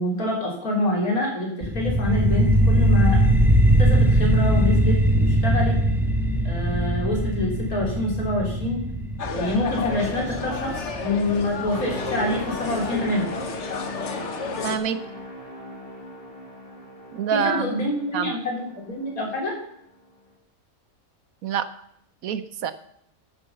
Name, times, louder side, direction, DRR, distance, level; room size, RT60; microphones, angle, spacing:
voice 1, 0.0-3.2 3.8-5.8 6.4-8.8 9.3-13.3 17.3-19.5, left 1 dB, 80° left, -2 dB, 4.1 m, -26 dB
sound 1, 1.6-12.6, right 1 dB, ahead, 1.0 m, -21 dB
sound 2, 9.2-14.8, left 5 dB, 55° left, 1.4 m, -32 dB
sound 3, 11.7-19.5 20.0-20.2, equal, 40° left, 2.8 m, -38 dB
voice 2, 14.6-15.0 17.1-17.8 18.1-18.4 21.4-21.7 22.2-22.7, right 8 dB, 75° right, 12 dB, 1.2 m, -26 dB
13.5 x 7.0 x 6.9 m, 0.72 s
omnidirectional pair, 1.5 m